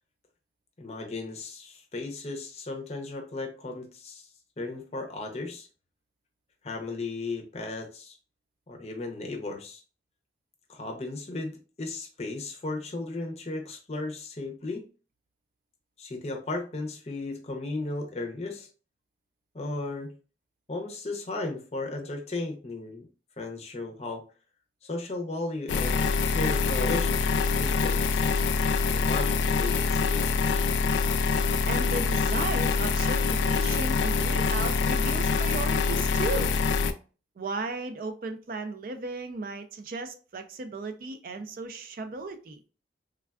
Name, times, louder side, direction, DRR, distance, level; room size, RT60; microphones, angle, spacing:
voice 1, 0.8-4.3 4.6-5.7 6.6-8.2 8.7-9.8 10.7-14.9 16.0-18.7 19.5-20.1 20.7-23.1 23.4-24.2 24.8-28.2 28.9-30.6, left 2 dB, 35° left, 0.5 m, -35 dB
sound 1, 25.7-36.9, left 4 dB, 85° left, 0.3 m, -25 dB
voice 2, 31.7-36.6 37.4-42.6, right 3 dB, 50° right, 0.3 m, -35 dB
3.4 x 2.2 x 2.2 m
head